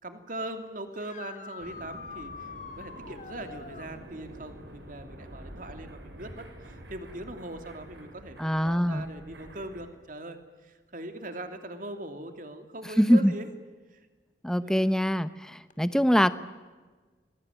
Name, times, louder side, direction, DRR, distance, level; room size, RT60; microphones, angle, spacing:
voice 1, 0.0-2.5 2.8-13.5 13.9-14.0 14.6-15.0, right 1 dB, 45° right, 7 dB, 2.8 m, -41 dB
sound 1, 0.9-3.9 7.2-7.3 9.4-9.5 15.7-15.8, left 5 dB, 40° left, 2.3 m, -44 dB
sound 2, 1.6-9.9, right 1 dB, 65° right, 6.3 m, -47 dB
voice 2, 8.4-9.0 13.0-13.3 14.4-16.3, equal, 5° left, 13 dB, 0.9 m, -23 dB
29.0 x 21.5 x 9.2 m, 1.3 s
head